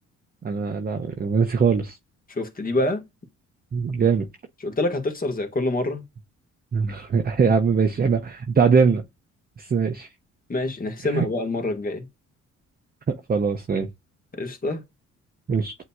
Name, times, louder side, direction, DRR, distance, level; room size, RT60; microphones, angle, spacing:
voice 1, 0.4-2.0 3.7-4.3 6.7-9.0 9.6-10.1 11.0-11.3 13.1-13.9 15.5-15.8, right 5 dB, 30° right, 0.7 m, -22 dB
voice 2, 2.3-3.0 4.6-6.0 10.5-12.1 14.3-14.8, left 2 dB, 30° left, 1.7 m, -26 dB
7.7 x 2.9 x 2.3 m
cardioid pair, 90°, 30 cm